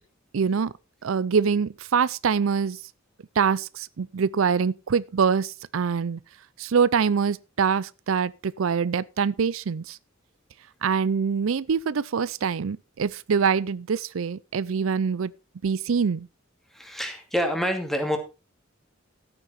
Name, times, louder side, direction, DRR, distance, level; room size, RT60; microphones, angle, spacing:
voice 1, 0.3-0.7 1.0-2.8 3.4-6.2 6.6-10.0 10.8-15.3 15.6-16.3, right 6 dB, 85° right, 0.5 m, -24 dB
voice 2, 16.7-18.2, equal, ahead, 2.4 m, -27 dB
13.0 x 8.9 x 4.3 m
head